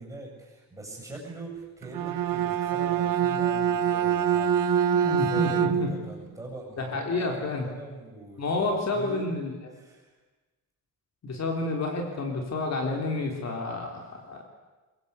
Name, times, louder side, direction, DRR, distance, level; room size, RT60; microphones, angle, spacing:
voice 1, 0.0-9.3 9.7-10.1, right 2 dB, 10° right, -1 dB, 7.5 m, -43 dB
Bowed string instrument, 1.8-6.1, right 8 dB, 65° right, 1.3 m, -25 dB
voice 2, 4.8-5.9 6.8-7.7 8.4-9.5 11.2-14.4, left 2 dB, 50° left, 2 dB, 3.7 m, -30 dB
24.0 x 22.5 x 8.3 m, 1.2 s
cardioid pair, 165°, 35 cm